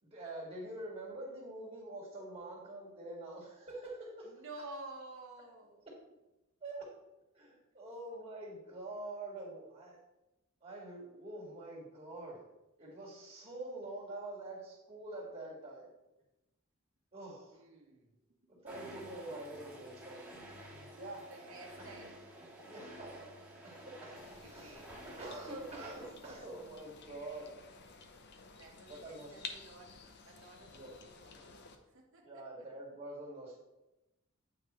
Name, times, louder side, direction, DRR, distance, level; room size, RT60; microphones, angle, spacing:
voice 1, 0.0-4.3 6.6-6.9 7.3-10.0 10.6-12.4 12.8-15.9 17.1-17.6 18.6-20.5 20.9-21.2 21.8-21.9 22.6-23.2 23.6-27.5 28.9-29.4 30.7-30.9 32.2-33.6, right 2 dB, 30° right, -6 dB, 1.8 m, -46 dB
voice 2, 4.2-5.9 17.5-18.1 21.3-22.2 24.4-25.0 28.6-32.6, right 2 dB, 65° right, -1 dB, 1.1 m, -52 dB
sound 1, 18.7-26.9, right 1 dB, 5° right, 1.6 m, -51 dB
sound 2, 24.2-31.8, left 4 dB, 50° left, 0.7 m, -52 dB
8.8 x 5.3 x 3.0 m, 0.95 s
head